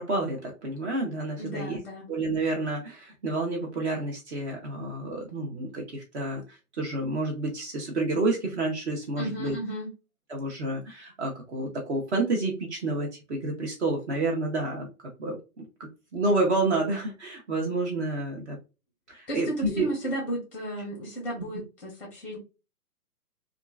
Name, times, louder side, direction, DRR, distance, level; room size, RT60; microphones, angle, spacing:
voice 1, 0.0-1.8 2.1-9.5 10.3-14.9 15.2-15.6 16.1-18.6 19.1-19.9, right 2 dB, 45° right, 1.1 m, -29 dB
voice 2, 1.4-2.1 9.2-9.9 19.3-22.4, right 1 dB, 5° left, 0.6 m, -34 dB
2.8 x 2.4 x 2.3 m
hypercardioid pair, 145°, 46 cm